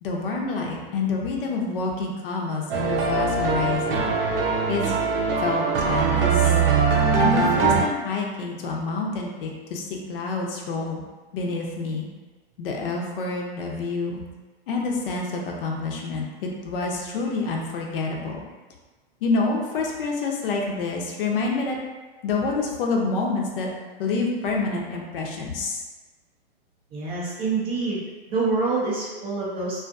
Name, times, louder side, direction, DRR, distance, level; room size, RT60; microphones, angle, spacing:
voice 1, 0.0-4.1 4.7-5.0 5.4-6.5 7.2-11.0 11.3-12.1 12.6-14.2 14.7-18.4 19.2-21.8 22.2-23.7 24.0-25.8, left 3 dB, 60° left, 0 dB, 0.6 m, -27 dB
sound 1, 2.7-7.8, right 5 dB, 65° right, 0.6 m, -21 dB
voice 2, 26.9-28.0 28.3-29.8, right 3 dB, 20° right, -6 dB, 0.3 m, -26 dB
2.5 x 2.3 x 2.5 m, 1.3 s
hypercardioid pair, 130°, 31 cm